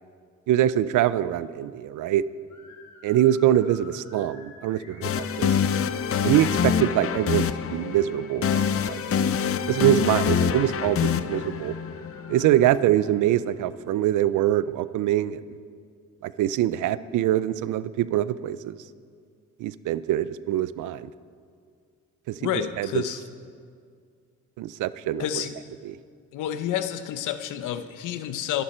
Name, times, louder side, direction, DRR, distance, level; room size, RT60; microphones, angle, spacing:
voice 1, 0.5-2.3 3.0-5.6 6.2-9.0 9.7-11.8 12.3-15.4 16.2-18.8 19.6-21.1 22.3-22.4 22.8-23.0 24.6-25.5 25.8-26.0, right 12 dB, 80° right, 16 dB, 0.6 m, -24 dB
sound 1, 2.5-12.5, left 3 dB, 65° left, 2.9 m, -50 dB
sound 2, 5.0-12.9, left 7 dB, 50° left, 0.7 m, -26 dB
voice 2, 22.4-23.2 25.2-25.5 26.3-28.6, left 10 dB, 90° left, 10 dB, 1.0 m, -29 dB
27.5 x 11.0 x 4.4 m, 2.2 s
cardioid pair, 90°, 30 cm